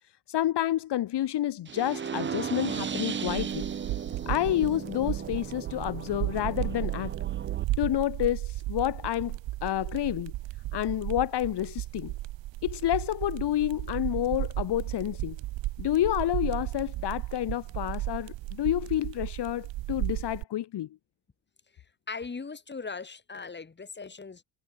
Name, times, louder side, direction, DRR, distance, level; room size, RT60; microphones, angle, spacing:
voice 1, 0.3-3.6 4.3-7.1 7.8-10.3 10.7-12.1 12.6-15.4 15.8-20.9, left 13 dB, 50° left, 2.2 m, -29 dB
sound 1, 1.7-7.6, right 7 dB, 25° right, 0.8 m, -36 dB
sound 2, 3.3-20.4, right 17 dB, 60° right, 1.3 m, -34 dB
voice 2, 22.1-24.4, left 4 dB, 20° left, 4.2 m, -39 dB
cardioid pair, 110°, 50 cm